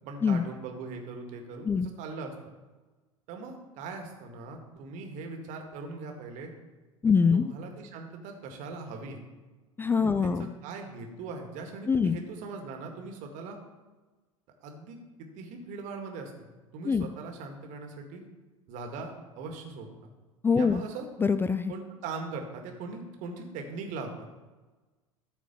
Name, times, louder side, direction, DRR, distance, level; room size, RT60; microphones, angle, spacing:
voice 1, 0.0-2.3 3.3-6.5 7.3-9.2 10.0-10.3 10.6-13.6 14.6-18.3 18.7-20.1 20.5-21.1 21.7-24.3, right 4 dB, 45° right, 3 dB, 2.0 m, -40 dB
voice 2, 7.0-7.5 9.8-10.5 11.9-12.2 16.8-17.1 20.4-20.8 21.2-21.7, left 5 dB, 15° left, 11 dB, 0.3 m, -24 dB
14.0 x 4.8 x 6.7 m, 1.2 s
figure-of-eight pair, 75°, 17 cm